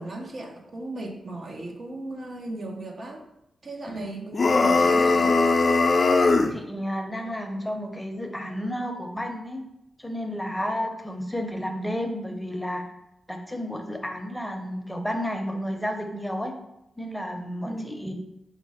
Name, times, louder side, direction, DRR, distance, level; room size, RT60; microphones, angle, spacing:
voice 1, 0.0-3.2 3.6-5.4 17.6-18.1, right 2 dB, 55° right, 1 dB, 0.8 m, -36 dB
sound 1, 4.3-6.6, left 3 dB, 50° left, 0.4 m, -20 dB
voice 2, 6.5-9.6 10.0-12.8 13.3-16.5 17.0-18.1, equal, 5° left, 3 dB, 0.7 m, -31 dB
5.0 x 2.1 x 4.8 m, 0.84 s
cardioid pair, 65°, 0 cm